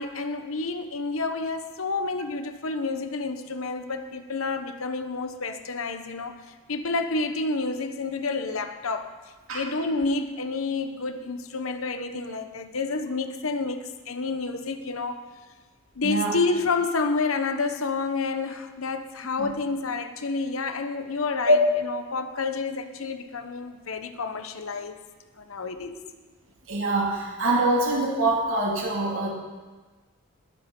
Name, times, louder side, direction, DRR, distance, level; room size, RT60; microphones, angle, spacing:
voice 1, 0.0-9.1 9.5-15.2 16.0-25.0 25.4-25.9, left 3 dB, 80° left, 8 dB, 1.0 m, -29 dB
voice 2, 16.0-16.4 19.4-19.5 21.5-21.6 26.7-29.3, right 1 dB, 75° right, -3 dB, 2.5 m, -23 dB
20.0 x 10.5 x 3.9 m, 1.3 s
head